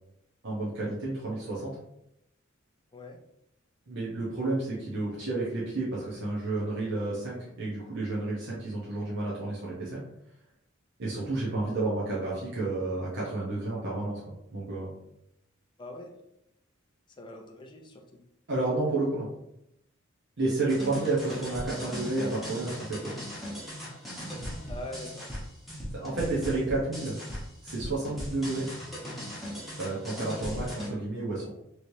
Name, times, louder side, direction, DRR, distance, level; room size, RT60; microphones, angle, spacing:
voice 1, 0.4-1.8 3.9-10.0 11.0-14.2 14.5-15.0 18.5-19.3 20.4-23.1 25.9-27.2 27.6-28.7 29.8-31.5, right 2 dB, 60° right, -7 dB, 0.8 m, -31 dB
voice 2, 15.8-16.1 17.2-18.2 24.7-25.3, left 1 dB, 25° left, 1 dB, 0.4 m, -42 dB
sound 1, 20.7-30.9, equal, ahead, 1.0 m, -38 dB
3.1 x 3.1 x 2.7 m, 0.80 s
head